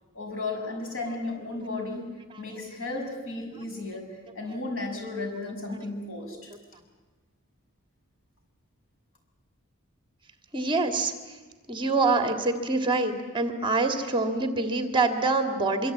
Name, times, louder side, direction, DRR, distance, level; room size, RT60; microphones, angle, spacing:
voice 1, 0.1-2.1 2.4-4.1 4.3-6.5, left 2 dB, 65° left, 3 dB, 6.3 m, -34 dB
voice 2, 10.5-11.4 11.7-15.9, right 3 dB, 25° right, 6 dB, 2.0 m, -25 dB
25.0 x 24.5 x 8.6 m, 1.3 s
head